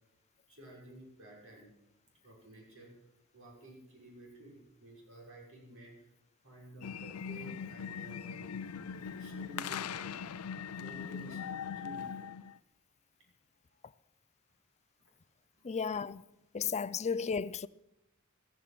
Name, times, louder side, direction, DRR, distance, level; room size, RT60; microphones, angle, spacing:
voice 1, 0.5-1.7 2.2-6.1 6.4-8.8 9.2-10.3 10.8-11.4 11.8-12.1 15.6-15.7, right 1 dB, 65° right, 6.3 m, -52 dB
sound 1, 6.8-12.6, left 7 dB, 85° left, 0.5 m, -41 dB
voice 2, 15.6-16.2 16.5-17.7, left 6 dB, 30° left, 0.5 m, -34 dB
15.0 x 14.5 x 5.9 m
head